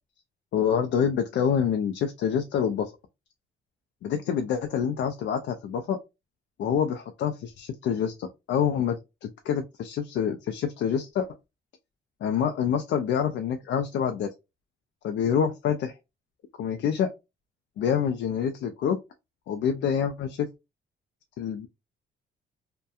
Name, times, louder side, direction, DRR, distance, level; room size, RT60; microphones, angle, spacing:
voice 1, 0.5-2.9 4.0-6.0 6.6-11.3 12.2-14.3 15.0-15.9 16.6-17.1 17.8-19.0 19.5-20.5 21.4-21.7, left 8 dB, 70° left, 0.4 m, -27 dB
2.7 x 2.2 x 2.2 m
cardioid pair, 90°, 20 cm